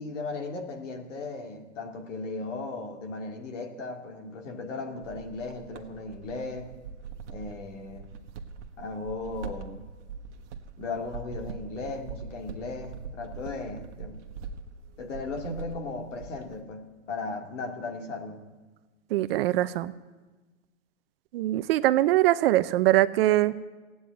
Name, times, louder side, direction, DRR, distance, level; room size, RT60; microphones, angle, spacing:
voice 1, 0.0-6.7 7.3-8.1 8.8-9.8 10.8-14.2 15.0-18.4, left 3 dB, 70° left, 3 dB, 2.3 m, -36 dB
sound 1, 5.0-16.6, right 5 dB, 65° right, 1.3 m, -43 dB
voice 2, 19.1-19.9 21.3-23.6, right 15 dB, 50° right, 15 dB, 0.6 m, -22 dB
15.5 x 9.5 x 8.3 m, 1.3 s
hypercardioid pair, 140°, 38 cm